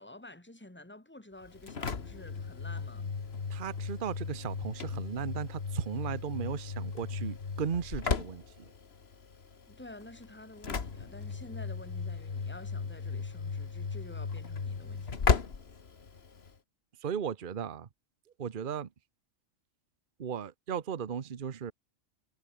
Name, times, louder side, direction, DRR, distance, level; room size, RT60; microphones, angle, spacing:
voice 1, 0.0-3.1 9.7-15.3, left 1 dB, 10° left, 2.6 m, -50 dB
Engine / Slam, 1.4-16.6, left 5 dB, 50° left, 1.8 m, -36 dB
voice 2, 3.5-8.4 17.0-17.9 18.4-18.9 20.2-21.7, right 7 dB, 45° right, 1.0 m, -36 dB
omnidirectional pair, 1.4 m